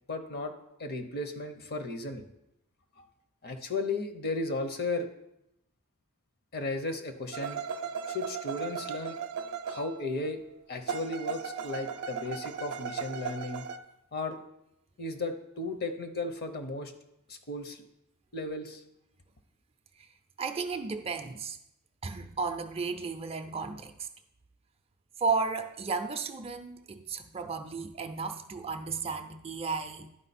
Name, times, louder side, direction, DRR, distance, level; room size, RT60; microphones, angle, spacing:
voice 1, 0.1-0.5 0.8-2.3 3.0-3.1 3.4-5.1 6.5-7.6 8.1-9.2 9.7-10.4 10.7-13.7 14.1-14.4 15.0-16.9 17.3-17.8 18.3-18.8, left 2 dB, 45° left, 7 dB, 0.8 m, -35 dB
sound 1, 7.3-10.3 10.9-13.8, right 6 dB, 70° right, 0.5 m, -37 dB
voice 2, 20.4-21.6 22.0-24.1 25.2-30.1, right 4 dB, 25° right, 7 dB, 0.4 m, -34 dB
11.0 x 4.8 x 4.2 m, 0.81 s
head